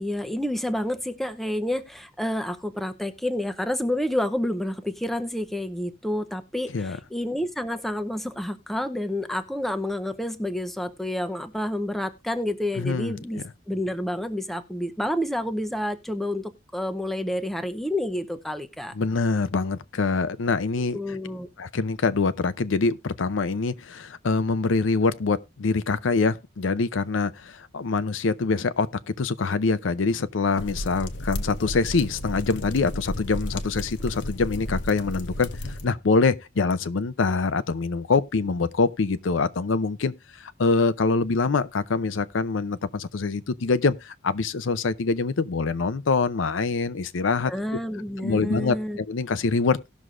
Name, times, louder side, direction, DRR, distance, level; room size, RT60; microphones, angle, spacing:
voice 1, 0.0-19.0 20.9-21.5 47.4-49.0, left 1 dB, ahead, 0.6 m, -29 dB
voice 2, 12.8-13.4 19.0-21.0 21.6-35.5 35.8-47.5 48.2-49.8, left 4 dB, 85° left, 0.6 m, -25 dB
sound 1, 30.6-35.9, left 1 dB, 65° left, 0.9 m, -33 dB
18.5 x 6.2 x 2.5 m
head